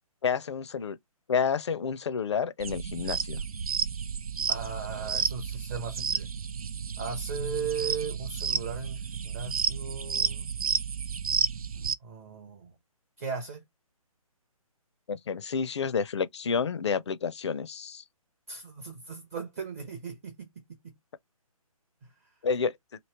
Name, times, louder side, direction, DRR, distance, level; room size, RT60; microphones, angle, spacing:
voice 1, 0.2-1.0 1.3-3.4 15.1-18.0 22.4-22.7, left 6 dB, 50° left, 0.4 m, -29 dB
sound 1, 2.6-11.9, right 6 dB, 75° right, 0.4 m, -31 dB
voice 2, 4.5-6.3 7.0-10.4 12.0-12.7 13.2-13.6 18.5-20.9, right 5 dB, 25° right, 0.6 m, -37 dB
3.0 x 2.7 x 2.8 m
figure-of-eight pair, 140°, 19 cm